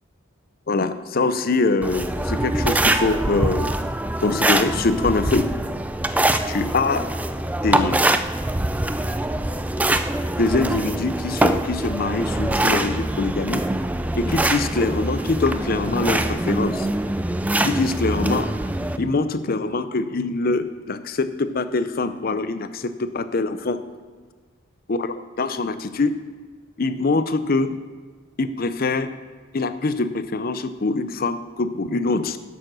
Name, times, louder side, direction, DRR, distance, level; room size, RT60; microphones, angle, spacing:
voice 1, 0.7-3.7 4.2-5.5 6.5-7.1 7.6-8.0 10.4-13.6 14.2-16.9 17.6-18.5 19.0-23.8 24.9-26.1 26.8-27.8 28.4-29.1 29.5-32.4, left 3 dB, 45° left, 11 dB, 0.6 m, -23 dB
sound 1, 1.8-19.0, right 1 dB, 5° right, 0.3 m, -24 dB
11.0 x 7.0 x 6.2 m, 1.5 s
head